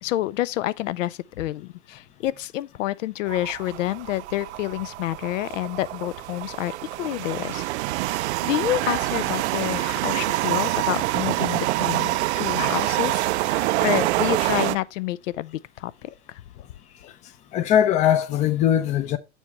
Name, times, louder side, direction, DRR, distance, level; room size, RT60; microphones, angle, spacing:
voice 1, 0.0-7.7 8.1-16.4, left 15 dB, 85° left, 0.6 m, -29 dB
sound 1, 3.3-14.8, right 18 dB, 65° right, 0.5 m, -26 dB
voice 2, 17.5-19.2, left 10 dB, 20° left, 0.4 m, -20 dB
7.2 x 5.5 x 2.9 m
supercardioid pair, 150°, 37 cm